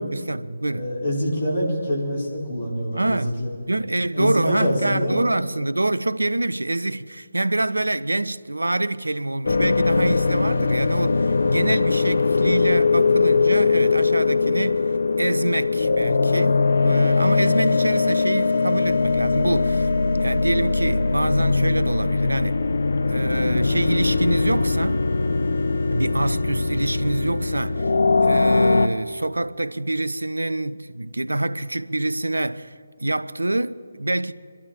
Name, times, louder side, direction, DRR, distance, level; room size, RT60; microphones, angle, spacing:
voice 1, 0.1-0.9 2.9-3.4 3.7-19.9 20.2-22.6 23.1-25.1 25.9-27.9 28.2-32.7 33.0-34.3, right 2 dB, 75° right, 0.6 m, -26 dB
voice 2, 0.7-3.5 4.1-5.3, equal, 45° left, 5.1 m, -25 dB
sound 1, 9.4-28.9, left 4 dB, 60° left, 0.7 m, -21 dB
26.5 x 12.5 x 4.3 m
figure-of-eight pair, 145°, 0 cm